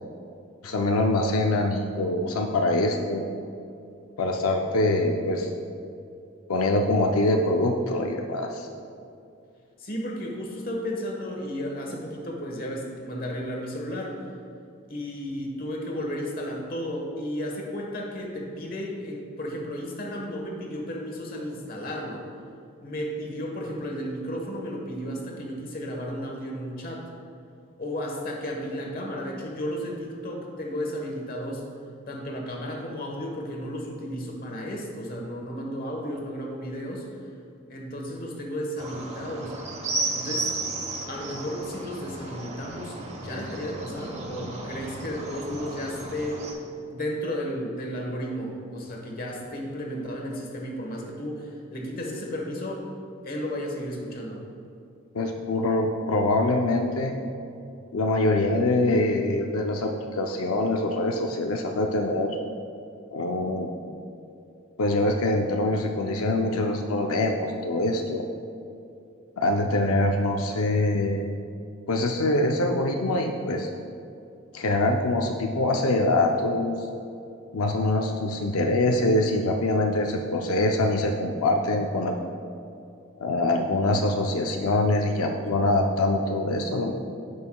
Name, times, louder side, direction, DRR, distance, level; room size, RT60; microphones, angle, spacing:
voice 1, 0.6-3.2 4.2-5.5 6.5-8.7 55.1-57.2 57.9-62.4 63.1-63.7 64.8-68.2 69.4-71.2 71.9-73.7 74.5-76.9 77.5-82.2 83.2-86.9, left 2 dB, 85° left, 2 dB, 0.6 m, -24 dB
voice 2, 9.8-14.2 14.9-22.3 22.8-27.1 27.8-31.6 32.1-37.2 37.7-39.6 40.1-40.5 41.1-46.6 46.9-52.9 53.2-54.4, equal, 40° left, 0 dB, 1.2 m, -33 dB
sound 1, 38.8-46.5, right 2 dB, 30° right, 0.9 m, -34 dB
15.5 x 5.6 x 2.3 m, 2.5 s
head